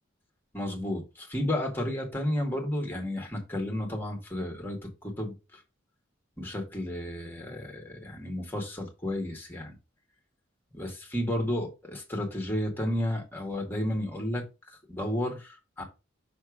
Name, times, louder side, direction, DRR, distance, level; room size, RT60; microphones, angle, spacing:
voice 1, 0.5-5.3 6.4-9.7 10.7-15.8, left 1 dB, 10° left, 1.8 m, -32 dB
6.0 x 3.5 x 4.7 m
head